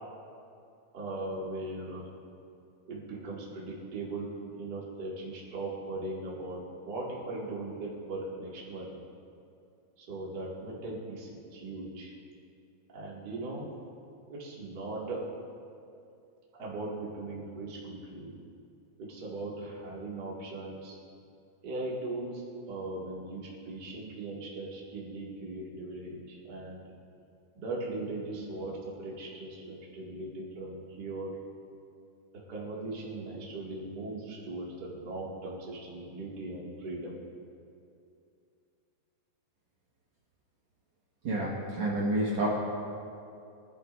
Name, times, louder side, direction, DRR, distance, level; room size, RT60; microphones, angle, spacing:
voice 1, 0.9-2.0 2.9-8.9 10.0-12.1 12.9-13.7 14.3-15.2 16.6-18.3 19.0-21.0 21.6-22.4 22.7-26.8 27.5-31.4 32.5-37.2, right 2 dB, 35° right, -5 dB, 2.4 m, -39 dB
voice 2, 41.2-42.5, right 1 dB, 55° right, -6 dB, 2.5 m, -29 dB
23.0 x 11.0 x 2.6 m, 2.5 s
omnidirectional pair, 4.0 m